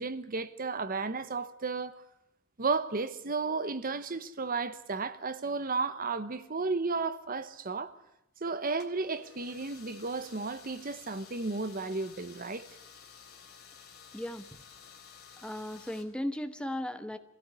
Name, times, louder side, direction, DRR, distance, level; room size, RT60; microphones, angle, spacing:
voice 1, 0.0-1.9 2.6-7.9 8.4-12.7, right 4 dB, 45° right, 1.1 m, -33 dB
sound 1, 8.7-16.0, left 7 dB, 55° left, 3.7 m, -53 dB
voice 2, 14.1-14.7 15.4-17.2, left 1 dB, 5° left, 1.2 m, -36 dB
23.0 x 16.5 x 9.7 m
head